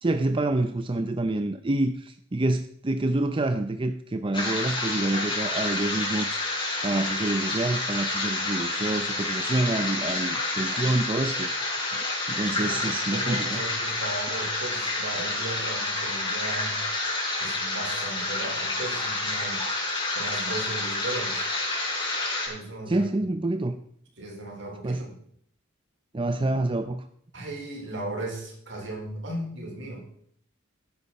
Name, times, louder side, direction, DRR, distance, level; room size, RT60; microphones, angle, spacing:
voice 1, 0.0-6.4 6.8-11.5 11.9-13.6 22.9-23.8 24.8-25.0 26.1-27.1, right 2 dB, 25° right, 8 dB, 0.6 m, -27 dB
sound 1, 4.3-22.5, left 2 dB, 25° left, 4.7 m, -29 dB
voice 2, 12.6-16.8 17.4-19.6 20.1-21.5 22.5-23.3 24.2-25.1 27.3-30.0, right 2 dB, 65° right, 0 dB, 4.4 m, -36 dB
13.5 x 10.5 x 4.2 m, 0.66 s
head